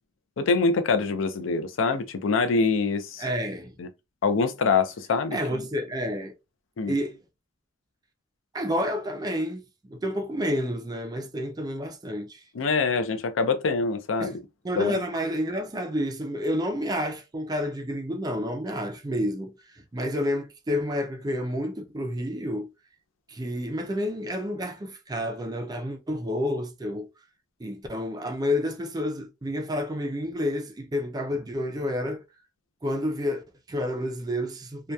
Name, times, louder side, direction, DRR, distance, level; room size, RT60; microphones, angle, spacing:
voice 1, 0.4-3.2 3.8-3.9 4.2-5.4 6.8-6.9 12.5-14.3 14.7-15.0, left 4 dB, 75° left, 0.4 m, -24 dB
voice 2, 3.2-3.8 5.3-6.3 6.9-7.2 8.5-12.4 14.2-14.3 14.6-22.7 23.3-27.1 27.6-32.2 32.8-34.9, equal, 20° right, 0.4 m, -30 dB
2.7 x 2.2 x 2.2 m
head